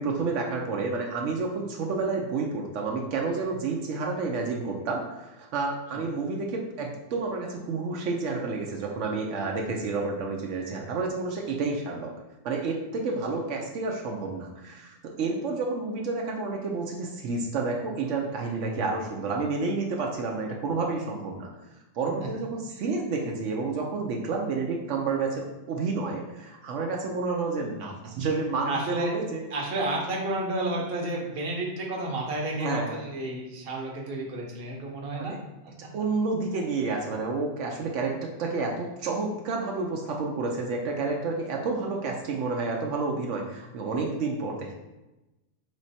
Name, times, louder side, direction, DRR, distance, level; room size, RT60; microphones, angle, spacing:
voice 1, 0.0-12.1 12.4-21.5 21.9-29.4 32.5-33.0 35.2-35.4 35.9-44.7, right 3 dB, 85° right, 1 dB, 1.0 m, -30 dB
voice 2, 28.7-29.1 29.5-35.3 35.6-35.9, right 2 dB, 55° right, -1 dB, 1.1 m, -31 dB
3.6 x 3.2 x 4.1 m, 1.0 s
omnidirectional pair, 1.2 m